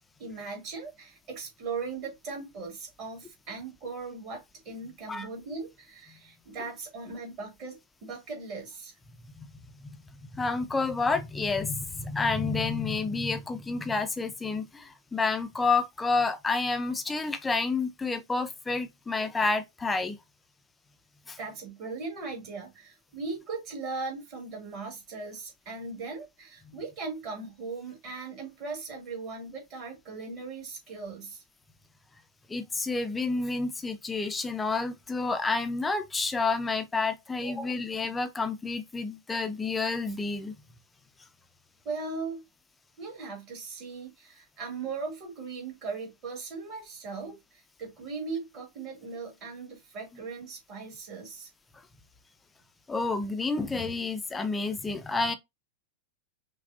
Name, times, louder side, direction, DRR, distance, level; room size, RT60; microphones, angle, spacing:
voice 1, 0.2-8.9 21.4-31.4 37.3-37.6 41.8-42.4 43.0-51.5, right 4 dB, 40° right, 2.2 m, -39 dB
voice 2, 10.3-20.2 21.3-21.4 32.5-40.5 52.9-55.3, left 3 dB, 10° left, 0.6 m, -29 dB
5.8 x 2.4 x 2.5 m
figure-of-eight pair, 90°, 0 cm